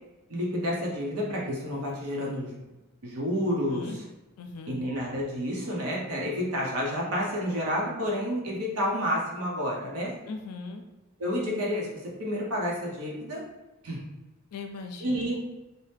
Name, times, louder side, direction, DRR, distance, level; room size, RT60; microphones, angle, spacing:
voice 1, 0.3-2.5 3.0-4.0 4.7-10.2 11.2-13.4 13.8-14.0 15.0-15.4, equal, 80° right, -3 dB, 0.8 m, -30 dB
voice 2, 3.5-4.0 4.4-4.8 10.3-10.8 14.5-15.3, left 3 dB, 90° left, 5 dB, 0.4 m, -39 dB
2.7 x 2.1 x 3.4 m, 1.1 s
head